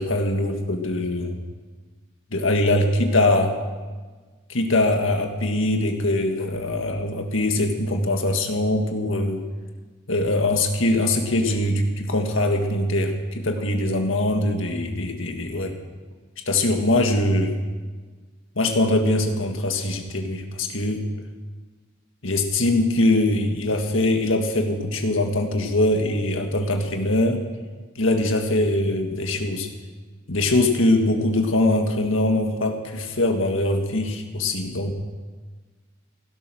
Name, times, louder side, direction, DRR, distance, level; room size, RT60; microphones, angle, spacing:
voice 1, 0.0-1.4 2.3-3.6 4.5-9.4 10.1-15.7 16.5-17.5 18.6-21.1 22.2-27.4 28.0-29.7 30.3-34.9, left 1 dB, 75° left, 4 dB, 1.9 m, -22 dB
16.0 x 12.0 x 6.3 m, 1.4 s
head